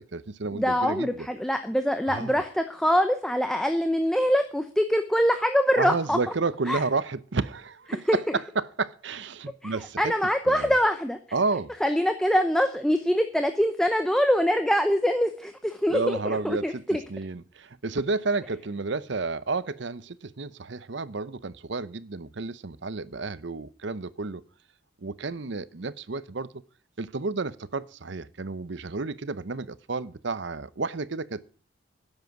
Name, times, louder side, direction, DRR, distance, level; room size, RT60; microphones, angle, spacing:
voice 1, 0.0-1.1 2.1-2.4 5.8-10.1 10.5-10.7 11.3-11.7 15.9-16.8 17.1-24.4 25.0-26.6 27.0-31.5, right 3 dB, 55° right, 0.7 m, -31 dB
voice 2, 0.5-6.2 6.7-6.8 8.1-8.2 9.6-11.2 11.8-17.0, equal, ahead, 0.7 m, -24 dB
10.5 x 7.6 x 9.3 m
head